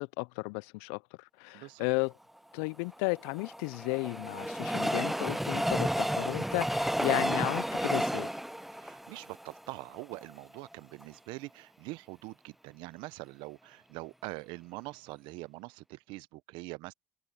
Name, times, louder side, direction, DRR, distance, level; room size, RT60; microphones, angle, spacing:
voice 1, 0.0-2.1 2.5-8.3, left 32 dB, 75° left, 0.4 m, -34 dB
voice 2, 1.5-1.9 8.8-16.9, right 22 dB, 70° right, 0.9 m, -44 dB
Train, 2.9-10.2 10.7-10.8 11.0-11.1, equal, ahead, 0.5 m, -32 dB
hypercardioid pair, 65°, 8 cm